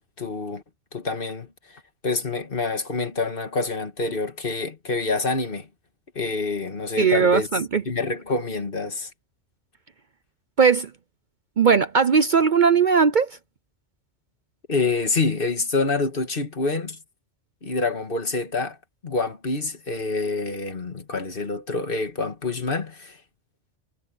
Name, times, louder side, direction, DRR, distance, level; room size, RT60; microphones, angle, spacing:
voice 1, 0.2-0.6 0.9-5.7 6.2-7.5 7.9-9.1 14.7-17.0 17.6-18.8 19.0-23.2, left 3 dB, 50° left, 2.0 m, -27 dB
voice 2, 7.0-7.8 10.6-10.9 11.6-13.4, right 6 dB, 50° right, 0.8 m, -18 dB
omnidirectional pair, 1.2 m